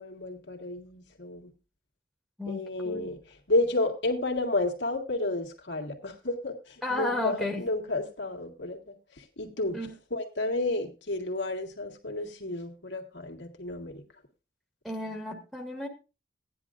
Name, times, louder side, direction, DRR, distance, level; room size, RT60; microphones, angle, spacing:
voice 1, 0.0-1.5 2.5-3.2 3.5-8.8 9.2-9.8 10.1-14.0, left 2 dB, 85° left, 1 dB, 1.9 m, -31 dB
voice 2, 2.4-3.1 6.8-7.6 9.7-9.9 14.8-15.9, left 1 dB, ahead, 0 dB, 1.8 m, -33 dB
16.5 x 10.0 x 2.6 m, 0.31 s
head